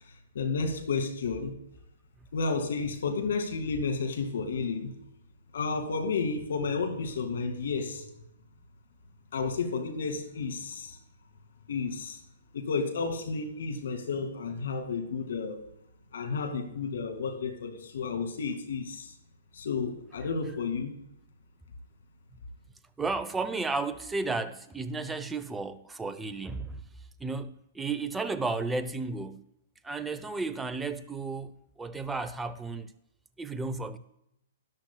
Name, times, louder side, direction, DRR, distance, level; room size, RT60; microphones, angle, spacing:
voice 1, 0.3-1.5 2.3-4.9 5.5-8.0 9.3-11.0 11.7-12.2 12.5-15.6 16.1-19.1 19.5-20.9, left 4 dB, 70° left, 2.2 m, -31 dB
voice 2, 23.0-26.9 27.2-29.5 29.8-32.9 33.4-34.0, right 3 dB, 10° right, 0.7 m, -33 dB
13.0 x 11.0 x 2.3 m
hypercardioid pair, 130°, 0 cm